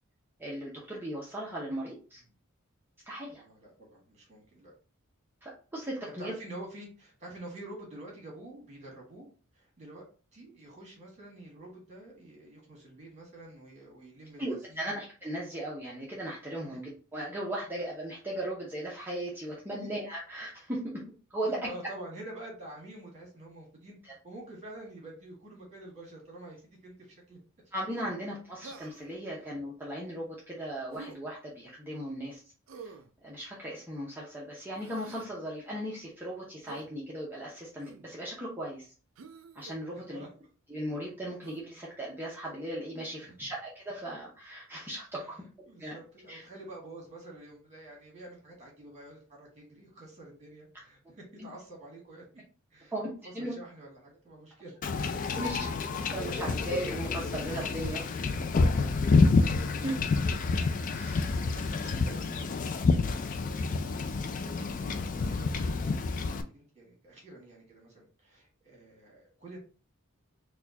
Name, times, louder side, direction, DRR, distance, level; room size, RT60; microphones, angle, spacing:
voice 1, 0.4-2.2 3.1-3.4 5.4-6.3 14.4-20.8 21.3-21.7 24.0-24.1 27.7-32.4 32.8-32.9 33.2-38.9 39.5-40.2 40.7-45.4 45.8-46.0 46.3-46.4 51.4-51.5 52.9-53.5 55.3-55.7 56.1-58.2 59.8-59.9 60.9-61.4, right 1 dB, 10° right, -5 dB, 0.7 m, -37 dB
voice 2, 3.3-4.7 6.2-9.2 9.5-10.0 10.3-14.9 19.8-19.9 21.4-26.6 26.8-27.4 29.3-29.4 39.9-40.3 42.9-43.5 45.2-45.3 45.7-52.2 52.7-52.9 53.2-55.1 56.0-56.1 58.7-59.4 61.0-63.4 63.6-69.6, right 1 dB, 30° right, -2 dB, 1.6 m, -48 dB
Human voice, 28.6-29.2 30.9-31.2 32.7-33.1 34.7-35.3 36.7-36.9 37.8-38.1 39.2-39.8 41.4-41.7, right 4 dB, 65° right, 0.4 m, -48 dB
Wind / Ocean / Boat Water vehicle, 54.8-66.4, left 4 dB, 40° left, 0.3 m, -28 dB
4.2 x 2.3 x 2.7 m, 0.37 s
head